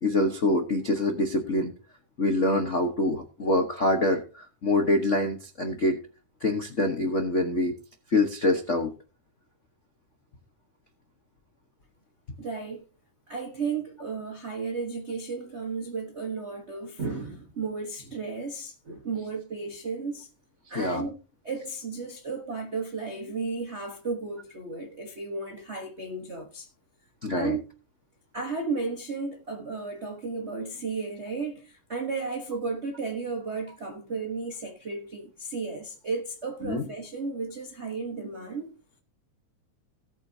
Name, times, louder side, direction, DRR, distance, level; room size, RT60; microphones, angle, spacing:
voice 1, 0.0-1.7 2.2-6.0 6.4-7.7 8.1-8.9 20.7-21.1 27.2-27.6 36.6-36.8, left 2 dB, 75° left, 0.6 m, -25 dB
voice 2, 12.4-12.8 13.3-20.3 20.7-21.2 21.4-26.7 27.3-27.6 28.3-38.7, right 4 dB, 75° right, 0.6 m, -34 dB
17.5 x 8.2 x 2.8 m
omnidirectional pair, 3.4 m